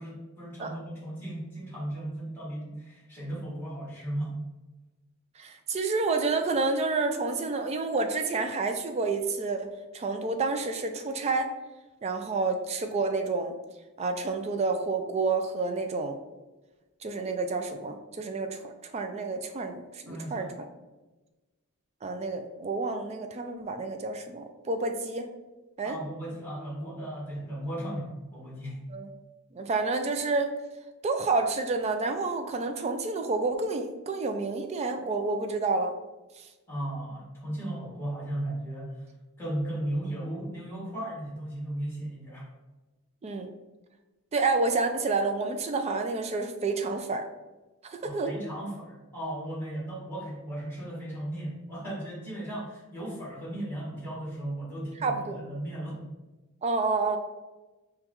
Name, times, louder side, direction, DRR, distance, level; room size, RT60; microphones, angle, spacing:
voice 1, 0.0-4.4 20.1-20.5 25.8-28.8 36.7-39.1 39.4-42.5 48.0-56.0, right 1 dB, 10° left, -6 dB, 1.4 m, -36 dB
voice 2, 5.4-11.5 12.0-13.5 14.0-16.2 17.0-20.5 22.0-25.3 25.8-26.0 28.9-29.1 29.5-30.5 31.0-35.9 36.4-36.5 43.2-43.5 44.3-47.3 47.8-48.3 55.0-55.4 56.6-57.2, right 3 dB, 30° right, 6 dB, 0.3 m, -29 dB
5.3 x 2.3 x 2.9 m, 1.1 s
head